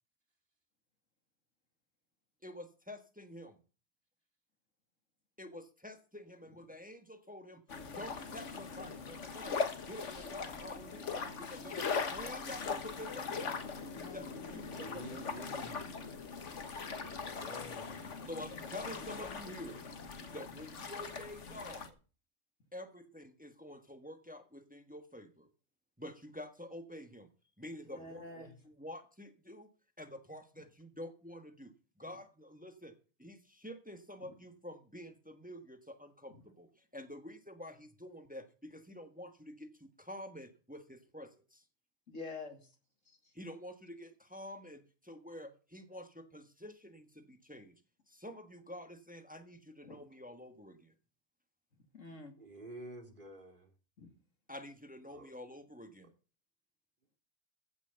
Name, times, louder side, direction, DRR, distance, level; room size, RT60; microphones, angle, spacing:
voice 1, 2.4-3.6 5.4-7.6 7.9-9.6 9.9-13.6 14.1-15.5 18.3-19.8 20.3-21.9 22.7-25.5 26.0-27.3 27.6-29.7 30.0-31.7 32.0-32.9 33.2-36.7 36.9-41.6 43.3-47.7 48.1-50.9 54.5-56.1, left 1 dB, 5° right, 1.3 m, -48 dB
sound 1, 7.7-21.9, left 5 dB, 70° left, 1.7 m, -40 dB
voice 2, 13.9-14.6 27.8-28.5 42.1-42.7 43.1-43.2 49.8-50.0 51.9-52.3 54.0-54.1, left 3 dB, 90° left, 2.7 m, -48 dB
voice 3, 14.7-15.8 17.0-18.1 27.9-28.5 52.4-53.7 55.1-55.3, right 1 dB, 40° right, 2.4 m, -50 dB
15.0 x 6.2 x 6.9 m
omnidirectional pair, 1.3 m